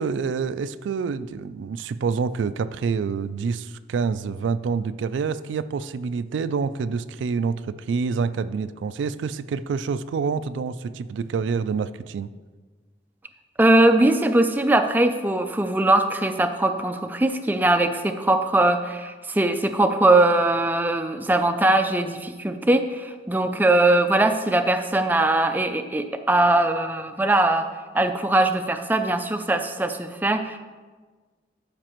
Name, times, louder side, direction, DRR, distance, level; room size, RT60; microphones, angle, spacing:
voice 1, 0.0-12.3, right 5 dB, 90° right, 14 dB, 0.3 m, -27 dB
voice 2, 13.6-27.7 27.9-30.6, right 2 dB, 10° right, 7 dB, 0.3 m, -21 dB
12.5 x 5.1 x 3.0 m, 1.4 s
head